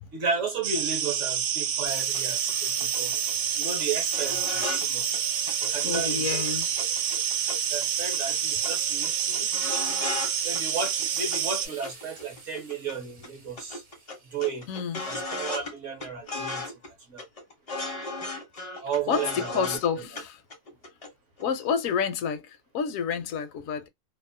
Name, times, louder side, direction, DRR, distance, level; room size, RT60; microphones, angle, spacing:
voice 1, 0.1-3.1 3.6-5.2 5.6-6.4 7.7-9.5 10.4-13.8 14.3-14.7 15.0-17.2 18.8-20.1, right 5 dB, 60° right, 1.0 m, -34 dB
sound 1, 0.6-11.7, right 9 dB, 80° right, 1.1 m, -28 dB
sound 2, 1.9-15.3, right 3 dB, 45° right, 0.6 m, -41 dB
sound 3, 2.1-2.2 2.5-2.6 2.8-3.3 3.6-3.8 4.1-4.9 5.1-5.2 5.5-6.0 6.3-7.8 8.1-8.4 8.6-8.7 9.0-10.3 10.5-11.4 11.8-12.9 13.2-13.3 13.6-15.7 16.0-16.9 17.2-19.9 20.2-20.3 20.5-21.1 21.4-21.5, left 3 dB, 40° left, 0.5 m, -36 dB
voice 2, 5.8-6.7 14.7-15.1 19.1-20.4 21.4-23.9, left 7 dB, 70° left, 0.8 m, -29 dB
2.7 x 2.0 x 2.5 m
omnidirectional pair, 1.7 m